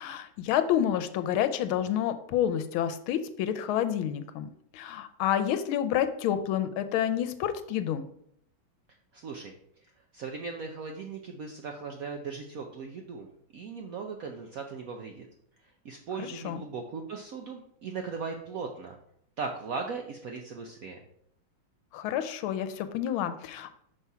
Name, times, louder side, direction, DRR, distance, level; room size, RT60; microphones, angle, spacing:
voice 1, 0.0-8.0 16.2-16.6 21.9-23.7, left 10 dB, 90° left, 10 dB, 1.5 m, -29 dB
voice 2, 9.1-9.5 10.1-13.3 13.5-15.3 15.8-19.0 19.4-21.0, right 5 dB, 70° right, 3 dB, 0.8 m, -38 dB
5.6 x 5.5 x 4.7 m, 0.71 s
omnidirectional pair, 2.2 m